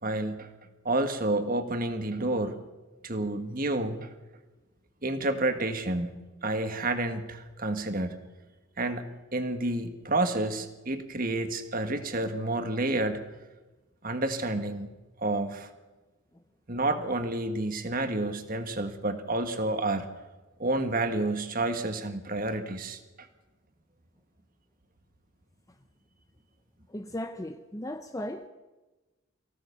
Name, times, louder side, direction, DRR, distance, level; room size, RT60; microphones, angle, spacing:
voice 1, 0.0-0.5 0.8-2.6 3.0-4.1 5.0-6.1 6.4-8.2 8.8-13.2 14.0-14.9 15.2-15.7 16.7-20.1 20.6-23.3, right 2 dB, 40° right, 1.6 m, -29 dB
voice 2, 26.9-28.5, left 1 dB, 15° left, 0.7 m, -36 dB
24.0 x 16.0 x 6.9 m
head